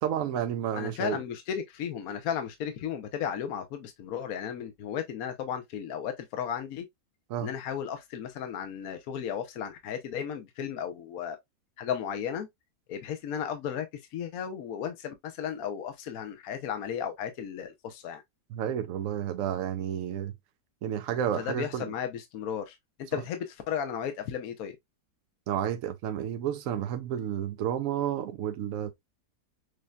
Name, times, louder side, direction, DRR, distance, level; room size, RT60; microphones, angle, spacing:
voice 1, 0.0-1.2 7.3-7.5 18.5-20.3 20.8-21.9 23.1-23.2 25.5-28.9, right 10 dB, 70° right, 0.8 m, -31 dB
voice 2, 0.7-6.9 7.4-11.4 11.8-12.5 12.9-13.9 14.1-18.2 21.3-24.8, left 8 dB, 65° left, 1.1 m, -34 dB
6.4 x 2.7 x 2.3 m
omnidirectional pair, 1.7 m